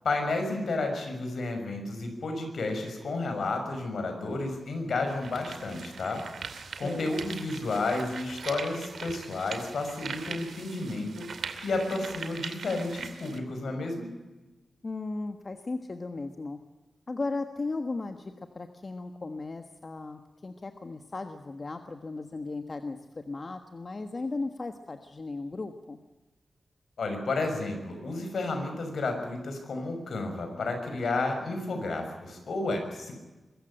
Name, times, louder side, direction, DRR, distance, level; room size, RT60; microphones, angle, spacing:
voice 1, 0.0-6.2 6.8-11.3 11.6-14.1 27.0-33.1, left 2 dB, 75° left, 5 dB, 6.3 m, -31 dB
sound 1, 4.2-4.3 4.9-13.4, right 5 dB, 80° right, 2.5 m, -41 dB
voice 2, 6.8-7.3 14.8-16.6 17.1-26.0, left 3 dB, 40° left, 7 dB, 1.4 m, -36 dB
24.0 x 14.5 x 10.0 m, 1.1 s
wide cardioid pair, 95°, 0 cm